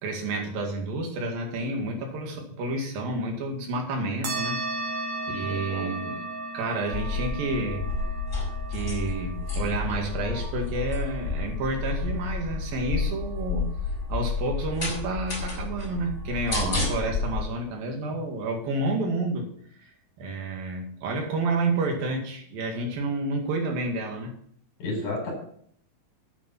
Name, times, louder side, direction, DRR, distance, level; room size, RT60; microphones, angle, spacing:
voice 1, 0.0-4.6 4.9-5.0 5.3-6.3 6.5-7.9 8.7-13.7 14.1-19.5 19.8-19.9 20.2-24.3, right 2 dB, 75° right, 2 dB, 3.8 m, -30 dB
sound 1, 4.2-13.2, right 2 dB, 55° right, 2.7 m, -36 dB
voice 2, 5.5-5.9 24.8-25.3, left 2 dB, 55° left, 1 dB, 5.6 m, -32 dB
sound 2, 6.9-17.4, left 4 dB, 25° left, 5.6 m, -30 dB
9.8 x 8.9 x 5.9 m, 0.62 s
omnidirectional pair, 4.2 m